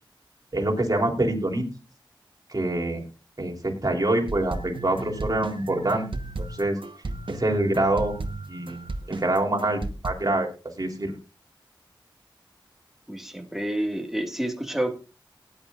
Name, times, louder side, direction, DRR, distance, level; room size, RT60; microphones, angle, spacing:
voice 1, 0.5-1.7 2.5-3.0 3.4-6.0 6.4-6.8 7.3-8.1 8.5-8.8 9.1-10.5 10.8-11.1, right 1 dB, 45° right, 1 dB, 3.6 m, -25 dB
sound 1, 4.3-10.1, right 2 dB, 75° right, 1.2 m, -35 dB
voice 2, 13.1-14.9, right 1 dB, 5° right, 4 dB, 1.9 m, -29 dB
18.5 x 10.5 x 2.5 m, 0.32 s
wide cardioid pair, 65°, 9 cm